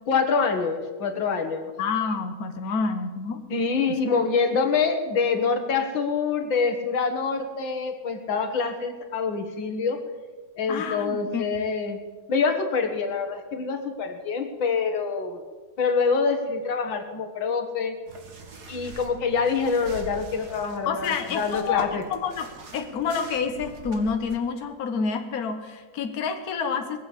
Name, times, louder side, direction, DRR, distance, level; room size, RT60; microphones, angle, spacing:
voice 1, 0.1-1.7 3.5-10.0 10.6-12.0 12.3-15.4 15.8-18.0 18.7-22.0, left 5 dB, 80° left, 6 dB, 2.3 m, -25 dB
voice 2, 1.8-3.4 10.7-11.4 20.8-27.0, left 5 dB, 55° left, 6 dB, 1.6 m, -28 dB
sound 1, 18.1-24.4, right 3 dB, 55° right, 2.2 m, -43 dB
20.5 x 7.5 x 8.4 m, 1.4 s
omnidirectional pair, 2.1 m